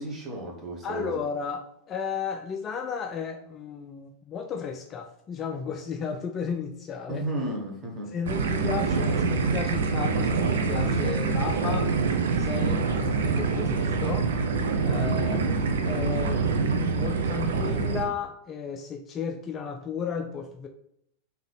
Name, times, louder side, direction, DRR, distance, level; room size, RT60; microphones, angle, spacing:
voice 1, 0.0-1.2 7.1-8.1 15.3-15.6, right 1 dB, 20° right, -1 dB, 1.1 m, -33 dB
voice 2, 0.8-7.2 8.1-11.9 12.3-14.3 14.8-15.5 15.8-16.5 16.9-20.7, left 6 dB, 25° left, 5 dB, 0.3 m, -34 dB
sound 1, 8.3-18.1, right 4 dB, 60° right, 0.5 m, -25 dB
3.6 x 2.9 x 3.5 m, 0.75 s
figure-of-eight pair, 90°, 0 cm